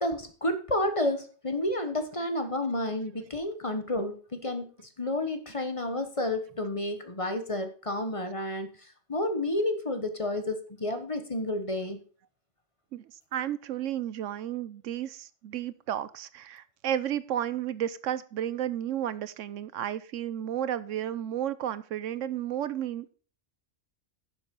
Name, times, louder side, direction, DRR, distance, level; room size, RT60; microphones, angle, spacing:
voice 1, 0.0-4.7 5.0-12.0, left 1 dB, 25° left, 8 dB, 1.1 m, -30 dB
voice 2, 13.3-23.1, right 11 dB, 75° right, 15 dB, 1.0 m, -32 dB
11.5 x 6.7 x 5.3 m, 0.39 s
omnidirectional pair, 1.3 m